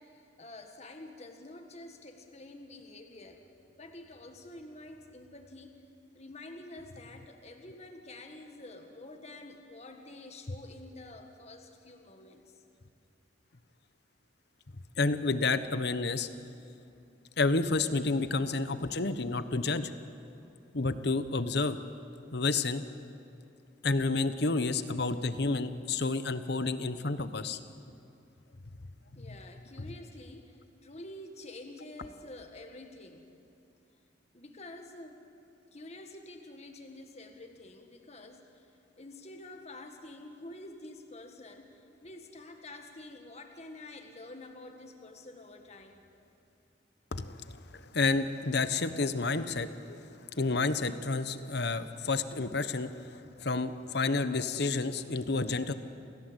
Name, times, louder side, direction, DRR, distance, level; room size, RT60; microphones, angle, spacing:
voice 1, 0.0-3.4 3.8-5.7 6.1-12.6 29.1-33.3 34.3-35.2 35.7-38.7 39.0-46.0, left 2 dB, 35° left, 4 dB, 1.7 m, -48 dB
voice 2, 15.0-16.3 17.4-19.9 20.7-21.8 22.3-22.8 23.8-27.6 29.2-29.4 29.8-29.9 47.1-55.7, left 3 dB, 60° left, 11 dB, 1.1 m, -30 dB
28.5 x 16.0 x 8.2 m, 2.7 s
head